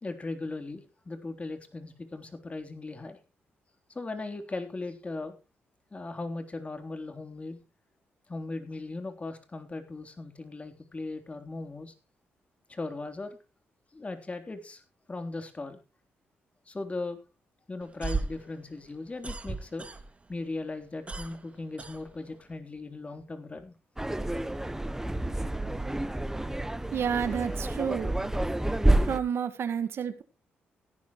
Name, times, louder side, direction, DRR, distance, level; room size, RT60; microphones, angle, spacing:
voice 1, 0.0-3.2 3.9-5.4 5.9-7.6 8.3-11.9 12.7-13.4 13.9-14.8 15.1-15.8 16.7-17.2 17.7-19.9 20.3-23.7, left 3 dB, 30° left, 3.6 m, -38 dB
sound 1, 17.8-20.4 20.7-22.6, right 3 dB, 30° right, 2.2 m, -36 dB
sound 2, 24.0-29.2, right 1 dB, 10° right, 1.2 m, -28 dB
voice 2, 26.9-28.1 29.0-30.2, right 7 dB, 70° right, 1.7 m, -30 dB
17.0 x 11.0 x 3.1 m
cardioid pair, 65°, 4 cm